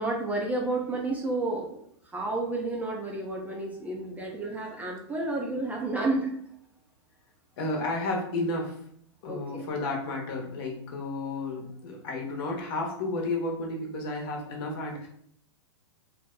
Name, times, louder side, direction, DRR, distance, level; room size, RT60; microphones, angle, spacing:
voice 1, 0.0-1.8 2.1-6.3 9.3-9.6, right 2 dB, 10° right, -1 dB, 0.5 m, -31 dB
voice 2, 7.6-8.7 9.2-15.1, left 2 dB, 55° left, 1 dB, 1.0 m, -32 dB
2.7 x 2.1 x 3.7 m, 0.68 s
hypercardioid pair, 115°, 15 cm